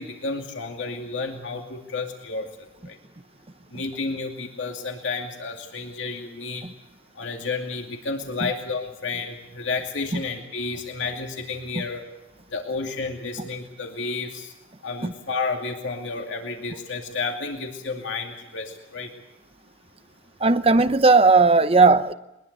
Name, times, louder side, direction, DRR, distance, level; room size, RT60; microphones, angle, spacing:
voice 1, 0.0-3.0 3.7-6.7 7.1-12.0 12.5-14.5 14.8-19.1, left 4 dB, 70° left, 3 dB, 2.5 m, -31 dB
voice 2, 20.4-22.1, right 3 dB, 30° right, 11 dB, 0.8 m, -17 dB
22.0 x 21.5 x 8.1 m, 0.94 s
head